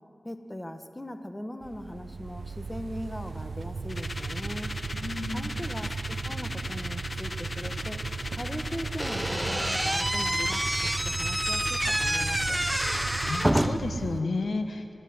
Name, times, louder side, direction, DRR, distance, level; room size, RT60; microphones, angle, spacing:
voice 1, 0.2-4.7 5.3-8.0 8.3-12.6, left 1 dB, 20° left, 8 dB, 1.6 m, -39 dB
sound 1, 1.6-14.2, right 5 dB, 80° right, 0.5 m, -36 dB
sound 2, 3.9-13.6, left 2 dB, 45° left, 1.2 m, -38 dB
voice 2, 4.9-5.5 13.3-14.9, left 3 dB, 85° left, 7 dB, 1.5 m, -32 dB
Slam / Squeak, 9.0-14.0, right 1 dB, 10° right, 0.8 m, -28 dB
29.5 x 13.0 x 9.7 m, 2.7 s
wide cardioid pair, 55°, 0 cm